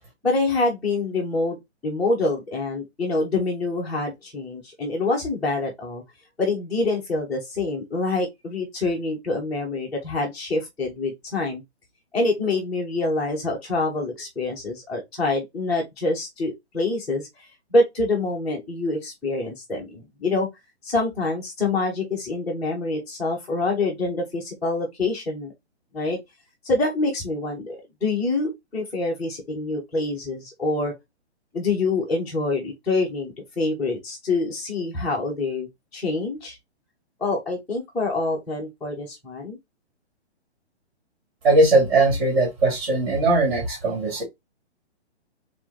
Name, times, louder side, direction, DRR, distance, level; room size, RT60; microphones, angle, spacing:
voice 1, 0.2-1.6 1.8-6.0 6.4-11.6 12.1-17.3 17.7-20.5 20.8-25.5 25.9-26.2 26.6-30.9 31.5-36.6 37.2-39.6, left 2 dB, ahead, 0.4 m, -26 dB
voice 2, 41.4-44.2, right 2 dB, 45° right, 2.3 m, -19 dB
4.3 x 2.5 x 3.8 m
hypercardioid pair, 150°, 34 cm